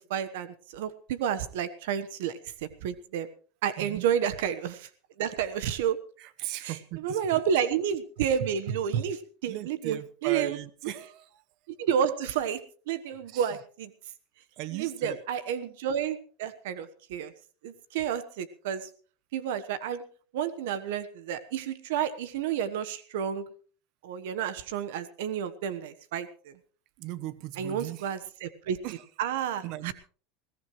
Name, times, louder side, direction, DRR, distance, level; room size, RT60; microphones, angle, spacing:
voice 1, 0.0-3.3 3.6-4.9 5.2-6.0 6.6-6.8 7.0-10.6 11.8-12.6 12.9-13.9 14.7-17.3 17.6-18.9 19.3-20.0 20.3-23.5 24.0-26.5 27.6-28.8 29.2-29.9, right 8 dB, 75° right, 13 dB, 1.2 m, -30 dB
voice 2, 6.2-7.2 9.4-11.4 13.3-13.6 14.6-15.2 27.0-28.1 28.8-29.0 29.6-29.9, right 16 dB, 55° right, 15 dB, 1.1 m, -37 dB
21.0 x 17.0 x 3.2 m, 0.40 s
supercardioid pair, 130°, 0 cm